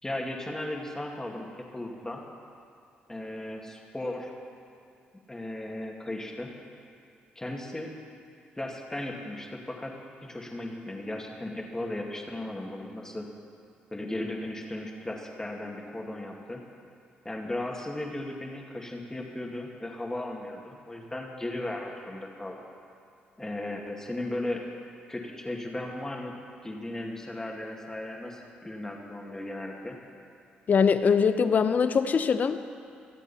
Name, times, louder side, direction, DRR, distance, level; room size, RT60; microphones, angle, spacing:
voice 1, 0.0-2.2 3.1-4.3 5.3-6.5 7.4-7.9 8.6-9.9 10.2-13.2 13.9-16.6 17.2-22.6 23.4-24.6 25.1-26.3 26.6-30.0, left 1 dB, 15° left, 0 dB, 2.2 m, -36 dB
voice 2, 30.7-32.6, left 6 dB, 50° left, 11 dB, 0.7 m, -22 dB
24.0 x 8.1 x 4.3 m, 2.5 s
supercardioid pair, 65°, 4 cm